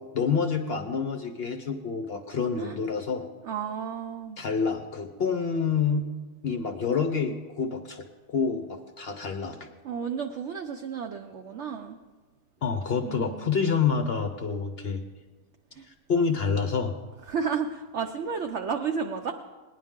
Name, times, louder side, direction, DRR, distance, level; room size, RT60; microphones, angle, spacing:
voice 1, 0.0-3.2 4.4-6.1 6.4-9.7 12.6-15.0 16.1-17.0, left 5 dB, 60° left, 6 dB, 0.6 m, -28 dB
voice 2, 3.4-4.4 9.8-12.0 13.0-13.5 15.7-15.9 17.3-19.3, right 6 dB, 65° right, 5 dB, 0.7 m, -32 dB
19.0 x 10.5 x 3.6 m, 1.3 s
omnidirectional pair, 1.8 m